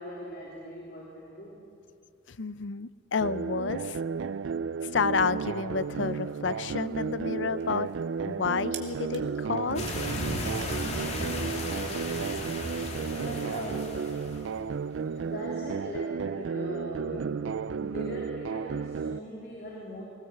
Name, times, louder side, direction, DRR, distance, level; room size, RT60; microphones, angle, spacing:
voice 1, 0.0-1.6 7.6-7.7 13.1-14.1 15.0-17.4 17.8-20.0, equal, 55° left, -3 dB, 3.2 m, -40 dB
voice 2, 2.3-4.0 4.9-7.9 8.3-9.8, left 5 dB, 80° left, 16 dB, 0.6 m, -30 dB
sound 1, 3.2-19.2, right 6 dB, 85° right, 0.4 m, -33 dB
sound 2, 5.7-11.1, right 8 dB, 70° right, 2.1 m, -51 dB
sound 3, 9.8-14.6, left 1 dB, 35° left, 2.4 m, -35 dB
21.0 x 18.5 x 8.0 m, 2.7 s
head